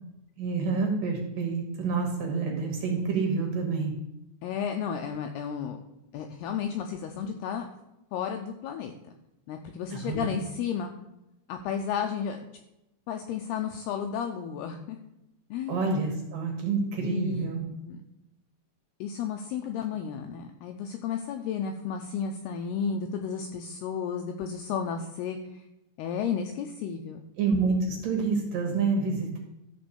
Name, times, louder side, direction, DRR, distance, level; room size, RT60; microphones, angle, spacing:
voice 1, 0.4-3.9 9.9-10.4 15.7-17.7 27.4-29.4, right 4 dB, 60° right, 1 dB, 2.5 m, -28 dB
voice 2, 4.4-5.8 6.1-7.7 8.1-8.9 9.5-10.9 11.5-12.4 13.1-15.0 15.5-15.9 17.0-17.5 17.8-18.0 19.0-25.6 26.0-27.2, left 7 dB, 90° left, 5 dB, 2.2 m, -32 dB
13.0 x 4.5 x 6.9 m, 0.89 s
omnidirectional pair, 5.4 m